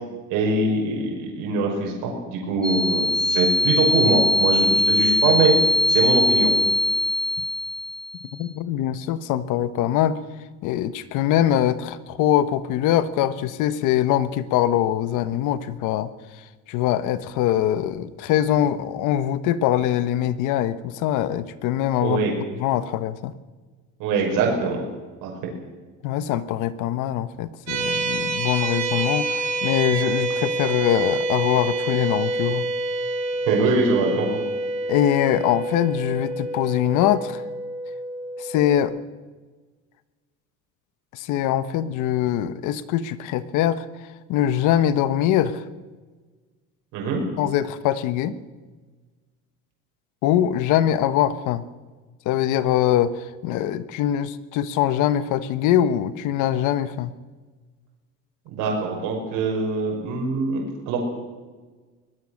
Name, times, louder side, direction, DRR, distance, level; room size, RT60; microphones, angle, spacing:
voice 1, 0.3-5.5 5.9-6.5 22.0-22.3 24.0-24.8 25.2-25.4 33.5-34.3 46.9-47.2 58.5-61.0, right 4 dB, 80° right, -1 dB, 5.9 m, -23 dB
sound 1, 2.6-8.3, left 2 dB, 5° left, 0.6 m, -21 dB
voice 2, 8.4-10.2 10.6-16.1 16.7-23.3 26.0-32.7 34.9-37.4 38.4-38.9 41.1-43.9 44.3-45.6 47.4-48.4 50.2-51.6 52.2-57.1, left 11 dB, 70° left, 13 dB, 1.3 m, -23 dB
sound 2, 27.7-38.8, right 2 dB, 60° right, 6.6 m, -27 dB
23.0 x 19.0 x 6.5 m, 1.4 s
cardioid pair, 170°, 32 cm